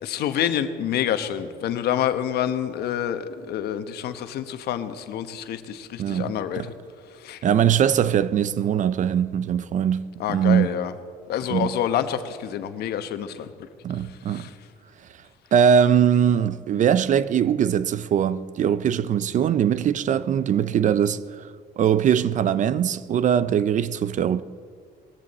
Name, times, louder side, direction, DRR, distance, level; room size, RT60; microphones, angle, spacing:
voice 1, 0.0-6.7 7.1-7.4 10.2-10.9 11.3-13.5 14.0-14.6, left 10 dB, 70° left, 1.1 m, -27 dB
voice 2, 6.0-6.3 7.4-10.8 11.5-11.7 13.8-14.5 15.5-21.5 21.8-24.4, right 8 dB, 45° right, 0.6 m, -21 dB
19.5 x 14.5 x 4.2 m
cardioid pair, 110°, 17 cm